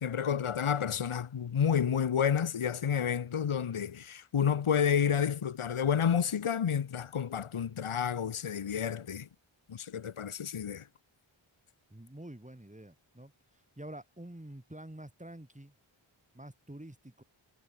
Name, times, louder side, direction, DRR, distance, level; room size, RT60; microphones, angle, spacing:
voice 1, 0.0-9.3 9.7-10.9, left 8 dB, 80° left, 0.9 m, -30 dB
voice 2, 11.9-15.7 16.3-17.2, right 1 dB, 15° right, 3.8 m, -48 dB
wide cardioid pair, 60°, 49 cm